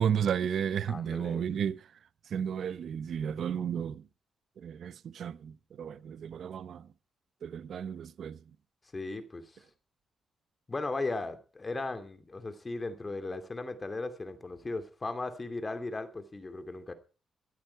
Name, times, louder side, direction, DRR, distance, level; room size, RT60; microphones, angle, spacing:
voice 1, 0.0-1.8 2.3-4.0 4.6-6.8 7.4-8.4, right 8 dB, 70° right, 0.8 m, -33 dB
voice 2, 0.9-1.5 8.9-9.6 10.7-16.9, left 2 dB, 30° left, 2.7 m, -37 dB
14.5 x 14.0 x 4.6 m
cardioid pair, 75°, 0 cm